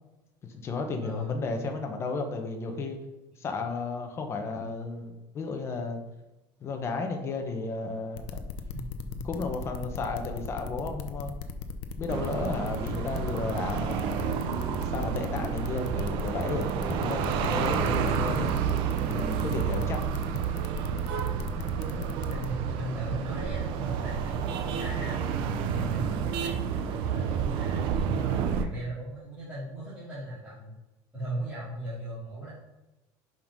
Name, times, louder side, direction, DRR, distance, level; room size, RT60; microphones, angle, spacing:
voice 1, 0.4-3.0 3.4-6.0 6.6-8.4 9.2-11.3 12.0-14.5 14.9-18.5 19.1-20.0, left 3 dB, 25° left, 4 dB, 1.0 m, -33 dB
voice 2, 1.0-1.4 8.8-9.0 21.5-25.2 25.6-30.7 31.1-32.5, equal, 10° right, -11 dB, 2.4 m, -38 dB
sound 1, 8.2-22.5, left 5 dB, 80° left, 0.7 m, -38 dB
sound 2, 12.1-28.6, right 7 dB, 60° right, 0.7 m, -30 dB
5.6 x 5.2 x 5.5 m, 1.0 s
cardioid pair, 165°, 10 cm